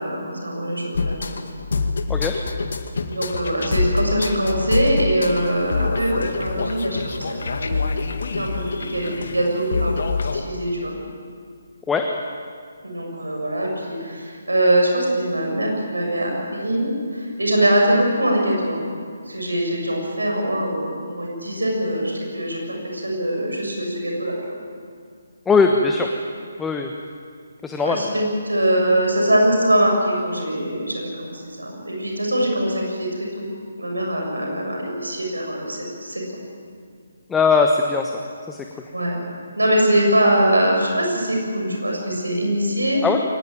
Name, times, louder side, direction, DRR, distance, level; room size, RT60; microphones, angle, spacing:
voice 1, 0.0-1.4 3.1-7.8 8.4-10.9 12.8-18.9 19.3-24.4 27.8-33.5 33.8-36.4 38.9-39.2 39.6-43.0, right 1 dB, 85° right, 0 dB, 7.3 m, -22 dB
sound 1, 0.9-10.4, left 4 dB, 60° left, 2.1 m, -26 dB
voice 2, 25.5-26.1 26.6-26.9 27.6-28.0 37.3-38.2 38.5-38.6 43.0-43.2, left 4 dB, 10° left, 2 dB, 1.2 m, -19 dB
23.0 x 19.0 x 9.2 m, 2.1 s
figure-of-eight pair, 145°, 0 cm